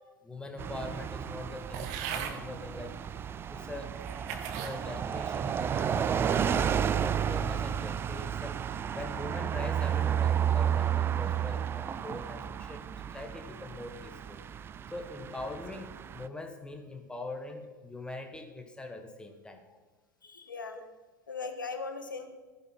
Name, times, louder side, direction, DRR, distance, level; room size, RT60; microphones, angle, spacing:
voice 1, 0.2-2.9 3.5-4.0 4.6-8.6 8.9-19.8, left 2 dB, 10° left, 6 dB, 1.5 m, -43 dB
sound 1, 0.6-16.3, right 8 dB, 20° right, 0.4 m, -32 dB
sound 2, 1.7-2.4 3.2-3.3 3.9-4.8 5.3-5.7, right 8 dB, 55° right, 1.6 m, -38 dB
voice 2, 20.2-20.8 21.3-22.3, left 4 dB, 80° left, 7 dB, 1.4 m, -38 dB
14.5 x 9.9 x 4.3 m, 1.2 s
figure-of-eight pair, 85°, 11 cm